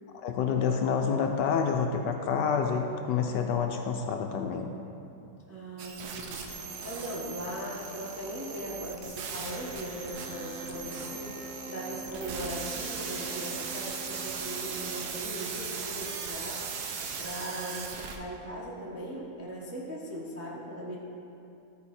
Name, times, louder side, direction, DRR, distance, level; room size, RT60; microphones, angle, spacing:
voice 1, 0.1-4.7, left 6 dB, 70° left, 4 dB, 1.1 m, -28 dB
voice 2, 5.4-21.0, equal, 15° right, -4 dB, 0.5 m, -39 dB
sound 1, 5.8-18.2, right 5 dB, 65° right, 1.1 m, -38 dB
sound 2, 9.9-15.4, right 1 dB, 80° right, 2.9 m, -46 dB
13.0 x 4.8 x 4.2 m, 2.7 s
omnidirectional pair, 2.1 m